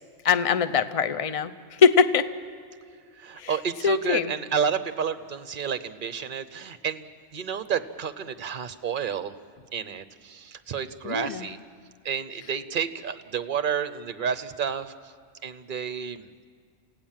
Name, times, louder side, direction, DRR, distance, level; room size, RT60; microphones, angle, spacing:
voice 1, 0.2-1.5 1.8-2.3 3.4-3.5 3.8-4.3 11.0-11.5, left 6 dB, 35° left, 11 dB, 0.7 m, -22 dB
voice 2, 3.2-9.3 9.7-11.6 12.0-14.9 15.4-16.3, right 7 dB, 50° right, 12 dB, 0.9 m, -30 dB
28.5 x 17.0 x 7.5 m, 2.2 s
omnidirectional pair, 1.2 m